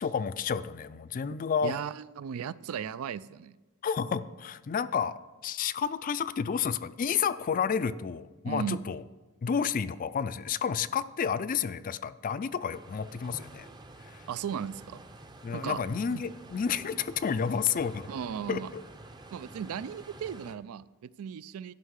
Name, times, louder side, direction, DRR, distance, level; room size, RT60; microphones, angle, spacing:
voice 1, 0.0-1.8 3.8-9.0 9.4-13.7 14.1-14.2 15.4-18.1 18.5-18.8, left 6 dB, 40° left, 15 dB, 0.3 m, -30 dB
voice 2, 1.6-3.6 8.5-8.8 14.3-15.1 15.5-15.8 16.1-16.2 18.1-18.7 19.3-21.7, right 7 dB, 70° right, 19 dB, 0.3 m, -36 dB
sound 1, 12.7-20.6, right 2 dB, 20° right, 0.6 m, -49 dB
11.5 x 5.6 x 6.3 m, 1.2 s
head